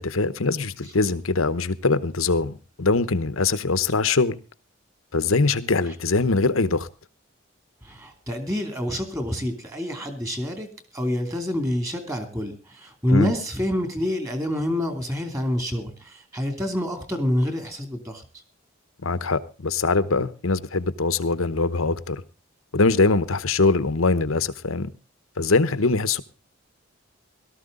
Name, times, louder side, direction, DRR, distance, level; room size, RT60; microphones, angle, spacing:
voice 1, 0.0-4.4 5.1-6.9 13.1-13.3 19.0-22.2 22.7-24.9 25.4-26.2, left 3 dB, 80° left, 1.0 m, -22 dB
voice 2, 7.8-10.7 10.9-18.2, left 1 dB, 15° right, 2.7 m, -27 dB
18.0 x 13.0 x 3.8 m
head